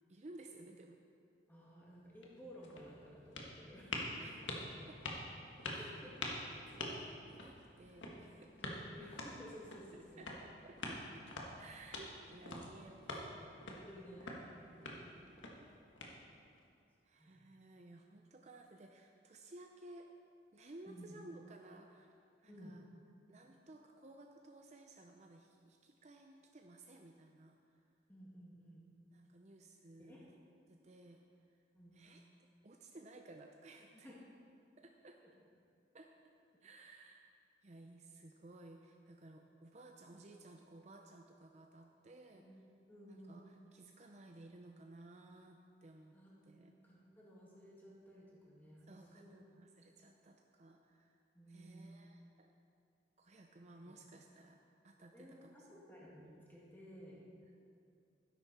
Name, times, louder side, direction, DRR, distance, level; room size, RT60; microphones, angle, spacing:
voice 1, 0.1-1.0 4.2-4.4 4.9-5.0 5.6-6.0 6.5-8.5 10.2-11.2 11.6-13.4 14.2-14.3 15.1-15.7 17.0-20.1 20.5-22.1 22.4-22.8 23.3-27.8 29.1-30.3 30.7-31.2 31.9-32.2 32.6-34.1 34.8-35.2 35.9-36.1 36.6-37.3 37.6-42.4 43.1-46.2 46.4-46.8 48.9-51.2 51.5-52.5 53.2-54.6 54.8-55.9, right 2 dB, 35° right, 3 dB, 0.5 m, -57 dB
voice 2, 1.5-4.1 5.7-6.2 6.5-6.6 8.0-8.1 8.6-10.3 13.5-14.3 14.7-15.1 17.2-17.5 20.9-21.2 22.5-22.7 28.1-28.8 30.0-30.2 31.7-32.0 33.9-34.2 35.2-35.3 42.3-42.5 42.9-43.5 46.1-49.3 51.3-52.0 53.8-53.9 55.1-57.2, equal, 10° left, -5 dB, 2.3 m, -56 dB
sound 1, 2.0-16.6, left 2 dB, 90° left, 1.6 m, -47 dB
12.5 x 10.5 x 4.3 m, 2.5 s
head